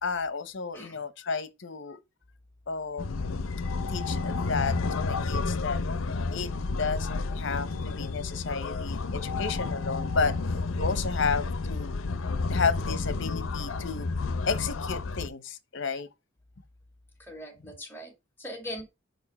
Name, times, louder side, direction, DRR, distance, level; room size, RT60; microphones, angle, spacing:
voice 1, 0.0-2.0 2.7-3.3 3.9-4.8 5.0-5.8 6.3-6.5 6.8-10.3 10.8-12.0 12.5-14.1 14.5-16.1, left 5 dB, 65° left, 0.9 m, -32 dB
sound 1, 3.0-15.3, left 3 dB, 85° left, 0.6 m, -31 dB
voice 2, 17.2-18.8, equal, 10° left, 2.3 m, -41 dB
5.2 x 4.4 x 4.3 m
head